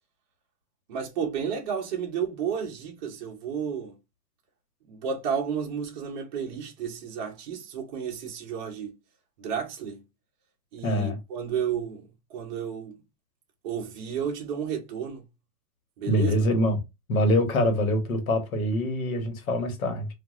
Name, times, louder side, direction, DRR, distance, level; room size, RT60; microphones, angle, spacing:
voice 1, 0.9-4.0 4.9-8.9 9.4-10.0 10.7-13.0 13.6-15.2 16.0-16.5, right 7 dB, 30° right, 0.8 m, -32 dB
voice 2, 10.8-11.2 16.1-16.8 17.1-20.1, left 1 dB, 60° left, 1.3 m, -24 dB
3.0 x 2.5 x 2.4 m
hypercardioid pair, 150°, 48 cm